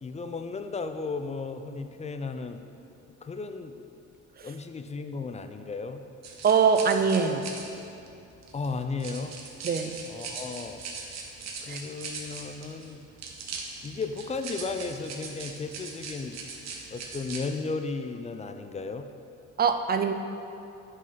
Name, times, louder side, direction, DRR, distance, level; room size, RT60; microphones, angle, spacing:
voice 1, 0.0-2.6 3.2-3.7 4.4-6.0 8.5-9.3 10.0-10.8 11.6-13.0 13.8-16.4 16.9-19.1, left 4 dB, 25° left, 8 dB, 0.4 m, -34 dB
sound 1, 6.2-17.5, right 4 dB, 60° right, 1.0 m, -41 dB
voice 2, 6.4-7.5 9.6-10.0 11.7-11.8 19.6-20.1, right 6 dB, 30° right, 7 dB, 0.5 m, -23 dB
5.5 x 5.3 x 5.6 m, 2.7 s
cardioid pair, 90°, 30 cm